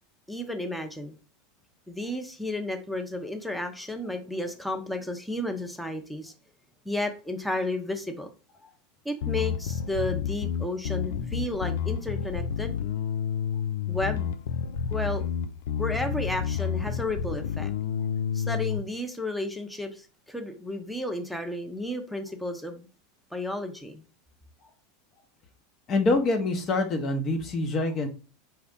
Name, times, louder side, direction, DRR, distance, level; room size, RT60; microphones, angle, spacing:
voice 1, 0.3-1.2 1.9-6.3 6.8-8.3 9.0-12.8 13.9-14.3 14.9-15.2 15.8-17.7 18.3-22.9 23.3-24.0, left 1 dB, ahead, 4 dB, 0.8 m, -32 dB
Bass guitar, 9.2-18.8, left 8 dB, 65° left, 0.3 m, -30 dB
voice 2, 25.9-28.1, left 2 dB, 35° left, 4 dB, 0.9 m, -25 dB
4.3 x 2.3 x 3.6 m, 0.34 s
hypercardioid pair, 85°, 0 cm